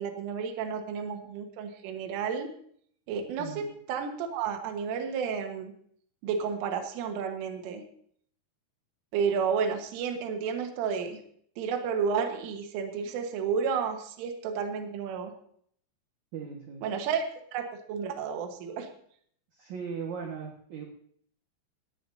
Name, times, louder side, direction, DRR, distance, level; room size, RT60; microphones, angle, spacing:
voice 1, 0.0-2.5 3.1-5.7 6.2-7.8 9.1-11.2 11.6-15.3 16.8-17.3 17.5-18.9, right 6 dB, 80° right, 5 dB, 4.0 m, -31 dB
voice 2, 3.4-3.7 16.3-16.8 19.5-20.8, right 6 dB, 65° right, 1 dB, 1.9 m, -38 dB
18.0 x 17.5 x 2.8 m, 0.62 s
omnidirectional pair, 5.8 m